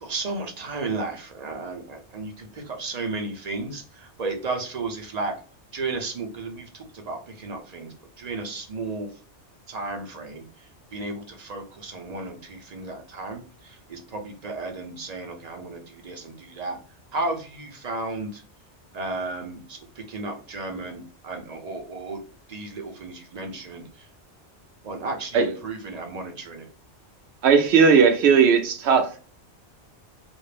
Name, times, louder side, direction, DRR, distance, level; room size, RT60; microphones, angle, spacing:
voice 1, 0.0-5.3 5.7-9.1 9.7-10.4 10.9-16.8 17.1-18.4 18.9-22.2 22.5-24.1 24.8-26.7, right 3 dB, 45° right, 0.6 m, -33 dB
voice 2, 27.4-29.2, right 6 dB, 75° right, 0.8 m, -17 dB
2.5 x 2.0 x 3.2 m
omnidirectional pair, 1.2 m